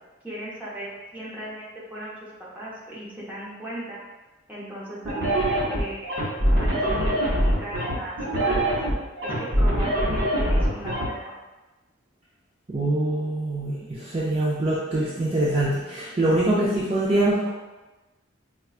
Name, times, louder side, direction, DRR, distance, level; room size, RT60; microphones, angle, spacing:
voice 1, 0.2-2.1 2.5-4.0 4.5-6.1 6.6-8.7 9.2-11.4, right 1 dB, 10° right, -8 dB, 0.8 m, -37 dB
sound 1, 5.1-11.1, equal, 70° right, 0.9 m, -23 dB
voice 2, 12.7-17.5, right 1 dB, 30° right, -8 dB, 0.4 m, -24 dB
4.5 x 2.3 x 2.4 m, 1.1 s
head